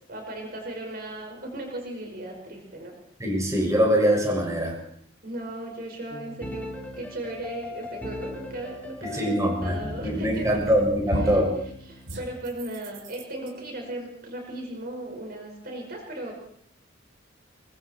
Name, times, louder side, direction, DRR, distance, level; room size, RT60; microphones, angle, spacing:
voice 1, 0.1-2.9 5.2-10.9 11.2-11.4 11.9-16.3, right 1 dB, 50° right, 2 dB, 5.5 m, -37 dB
voice 2, 3.2-4.7 9.0-9.8 10.0-11.5, equal, 15° right, -1 dB, 6.4 m, -23 dB
sound 1, 6.1-12.2, left 2 dB, 10° left, 3.3 m, -38 dB
sound 2, 10.3-10.7 11.1-11.5 12.1-13.5, right 1 dB, 90° right, 4.5 m, -33 dB
24.5 x 23.5 x 4.6 m, 0.65 s
head